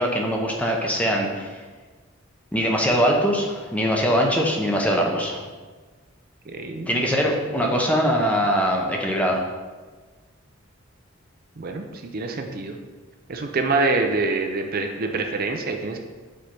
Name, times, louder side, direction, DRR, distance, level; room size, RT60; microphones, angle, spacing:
voice 1, 0.0-1.6 2.5-5.4 6.9-9.4, equal, 5° left, 0 dB, 0.8 m, -22 dB
voice 2, 6.5-6.9 7.5-7.7 11.6-12.8 13.3-16.0, right 3 dB, 45° right, 4 dB, 0.5 m, -26 dB
5.1 x 4.2 x 6.0 m, 1.4 s
head